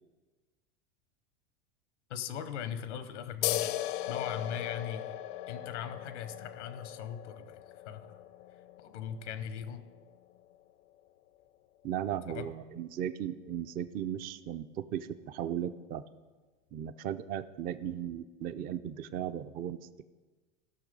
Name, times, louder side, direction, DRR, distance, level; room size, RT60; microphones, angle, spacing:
voice 1, 2.1-3.8 4.1-5.1 5.5-7.6 7.8-8.2 8.8-9.8 12.3-12.5, left 8 dB, 90° left, 12 dB, 0.9 m, -39 dB
sound 1, 3.4-10.6, left 14 dB, 60° left, 0.5 m, -38 dB
voice 2, 11.8-16.0 16.7-20.0, right 10 dB, 25° right, 12 dB, 0.4 m, -36 dB
15.0 x 6.2 x 5.3 m, 1.3 s
supercardioid pair, 120°, 34 cm